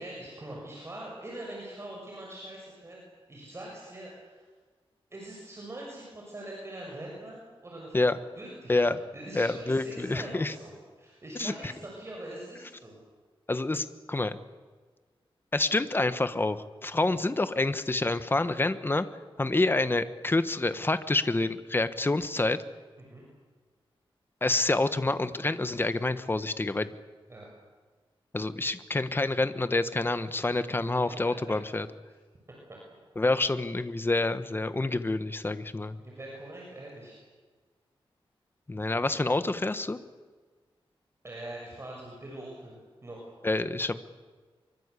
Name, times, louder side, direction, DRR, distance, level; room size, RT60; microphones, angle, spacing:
voice 1, 0.0-3.0 3.3-4.4 5.1-13.0 23.0-23.2 27.3-27.5 31.0-31.3 32.7-32.8 36.0-37.2 41.2-43.3, right 1 dB, 30° right, -2 dB, 6.8 m, -43 dB
voice 2, 8.7-9.0 9.3-10.5 11.4-11.7 13.5-14.4 15.5-19.1 19.4-22.6 24.4-26.9 28.3-31.9 33.2-36.0 38.7-40.0 43.4-44.0, left 2 dB, 25° left, 11 dB, 1.3 m, -27 dB
25.0 x 24.0 x 8.4 m, 1.4 s
wide cardioid pair, 110°, 10 cm